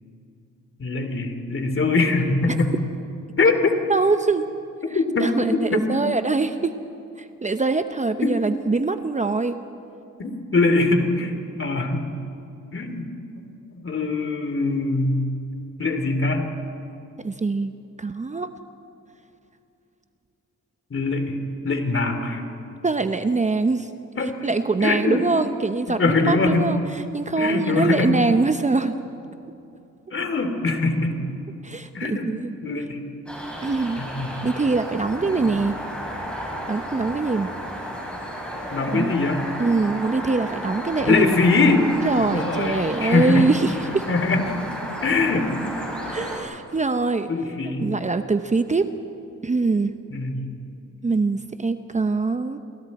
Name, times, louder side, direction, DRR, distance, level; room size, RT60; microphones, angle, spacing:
voice 1, 0.8-2.7 3.4-3.8 4.9-5.8 8.2-8.3 10.2-12.1 12.7-13.1 13.7-15.2 15.8-16.4 20.9-21.4 21.6-22.4 24.2-24.5 24.8-25.2 26.0-26.6 27.4-28.1 30.1-31.2 31.9-32.3 32.6-33.0 34.0-34.3 35.2-35.5 38.7-39.4 41.1-41.9 42.2-43.5 44.1-44.5 45.0-45.5 47.3-47.9 50.1-50.5, left 3 dB, 45° left, 6 dB, 3.0 m, -22 dB
voice 2, 3.9-4.5 4.9-6.7 7.4-9.6 17.2-18.5 22.8-23.9 24.4-29.0 31.6-32.5 33.6-34.0 34.4-35.8 36.7-37.5 38.9-39.2 39.6-41.4 42.0-44.0 46.1-47.3 47.8-48.9 49.4-49.9 51.0-52.6, right 3 dB, 25° right, 9 dB, 0.9 m, -23 dB
sound 1, 33.3-46.4, equal, 5° left, 7.1 m, -33 dB
28.5 x 23.0 x 4.3 m, 2.7 s
cardioid pair, 75°, 30 cm